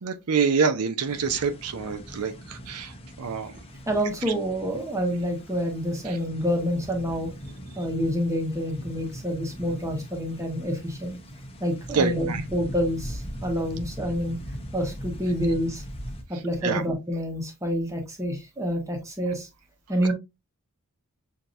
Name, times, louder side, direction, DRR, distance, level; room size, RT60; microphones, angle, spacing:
voice 1, 0.0-2.9 3.2-3.5 6.1-6.2 11.9-12.4 16.6-16.8, right 5 dB, 80° right, 0.6 m, -26 dB
sound 1, 1.1-16.2, equal, 25° left, 0.9 m, -40 dB
voice 2, 3.9-7.3 7.7-11.2 11.6-14.4 14.7-15.8 16.3-19.5 19.9-20.1, equal, 15° right, 1.2 m, -28 dB
6.5 x 2.8 x 2.5 m
head